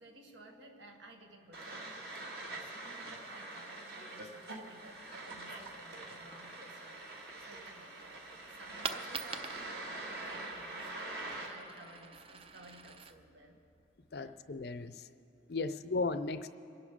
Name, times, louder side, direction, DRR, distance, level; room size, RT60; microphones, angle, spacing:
voice 1, 0.0-7.1 7.5-13.6 14.1-14.4 15.5-15.8, right 1 dB, 80° right, 3 dB, 1.7 m, -56 dB
sound 1, 1.5-11.5, right 2 dB, 55° right, 2.0 m, -44 dB
Coin (dropping), 8.5-14.5, right 5 dB, 30° right, 0.5 m, -46 dB
voice 2, 14.1-15.0 15.5-16.5, left 3 dB, 55° left, 12 dB, 0.5 m, -35 dB
27.0 x 11.5 x 3.7 m, 2.6 s
head